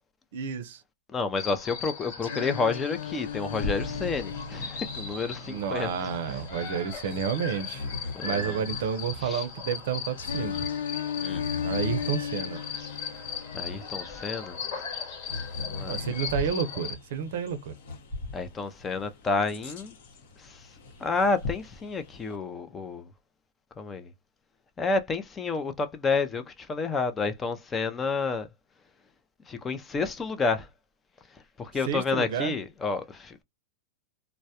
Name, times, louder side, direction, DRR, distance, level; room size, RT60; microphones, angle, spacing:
voice 1, 0.3-0.8 5.5-10.7 11.6-12.6 15.9-17.7 31.9-32.5, right 7 dB, 65° right, 0.5 m, -30 dB
voice 2, 1.1-6.1 6.5-6.7 8.1-8.6 9.2-9.4 11.2-11.4 13.5-14.6 15.6-16.0 18.3-20.0 20.4-20.6 21.0-23.1 23.8-24.1 24.8-28.5 29.5-30.7 31.6-33.4, left 4 dB, 20° left, 0.4 m, -30 dB
sound 1, 1.4-16.9, left 6 dB, 50° left, 1.2 m, -38 dB
Singing, 2.2-6.2 10.2-14.2, left 8 dB, 85° left, 0.4 m, -36 dB
Bird vocalization bird call bird song, 2.9-22.4, left 3 dB, 65° left, 0.9 m, -40 dB
2.2 x 2.0 x 2.7 m
hypercardioid pair, 130°, 0 cm